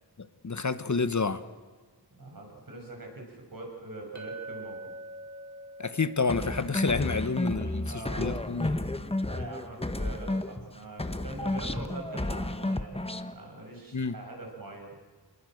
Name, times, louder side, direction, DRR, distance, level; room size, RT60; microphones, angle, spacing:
voice 1, 0.2-1.4 5.8-8.7 13.9-14.1, left 4 dB, 45° left, 12 dB, 1.1 m, -29 dB
voice 2, 2.2-4.8 7.5-8.4 8.9-15.0, right 2 dB, 60° right, 1 dB, 7.2 m, -43 dB
Chink clink, 4.2-8.6, right 2 dB, 45° right, 4.4 m, -45 dB
sound 1, 6.3-10.7 11.0-13.3, left 1 dB, 15° left, 1.2 m, -32 dB
27.0 x 21.0 x 7.9 m, 1.5 s
wide cardioid pair, 85°, 39 cm